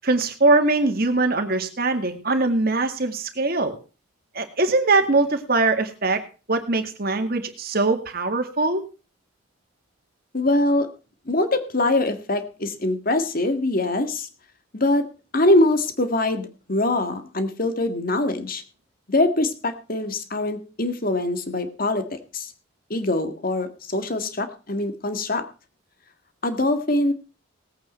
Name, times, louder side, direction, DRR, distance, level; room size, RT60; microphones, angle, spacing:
voice 1, 0.0-3.8 4.3-6.2 6.5-8.8, right 3 dB, 50° right, 6 dB, 2.0 m, -22 dB
voice 2, 10.3-10.9 11.2-14.3 14.7-15.1 15.3-18.6 19.1-22.5 22.9-25.5 26.4-27.1, left 2 dB, 45° left, 8 dB, 1.8 m, -23 dB
18.5 x 8.7 x 4.4 m, 0.35 s
head